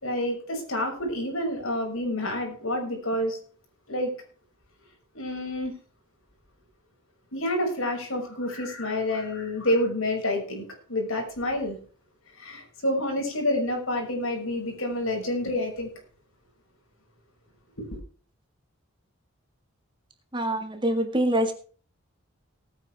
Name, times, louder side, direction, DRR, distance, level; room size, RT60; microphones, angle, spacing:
voice 1, 0.0-3.4 3.9-4.1 5.1-5.7 7.3-11.8 12.4-15.9 17.8-17.9, left 1 dB, 70° left, 2 dB, 6.0 m, -28 dB
voice 2, 20.3-21.5, right 1 dB, 20° right, 6 dB, 1.8 m, -25 dB
19.5 x 9.1 x 3.4 m, 0.42 s
head